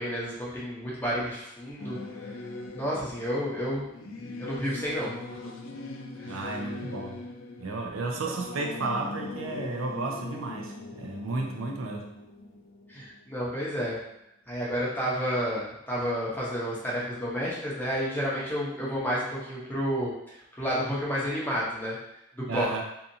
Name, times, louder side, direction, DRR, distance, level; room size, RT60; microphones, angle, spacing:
voice 1, 0.0-2.0 2.7-3.9 4.4-5.1 6.2-6.4 12.9-14.0 14.5-22.0 22.5-22.7, equal, 10° left, -7 dB, 0.7 m, -30 dB
Singing / Musical instrument, 1.8-13.6, left 3 dB, 85° left, 0.4 m, -41 dB
voice 2, 6.3-7.2 7.6-12.1 22.5-22.8, right 3 dB, 85° right, 1 dB, 0.5 m, -33 dB
2.7 x 2.4 x 2.6 m, 0.83 s
head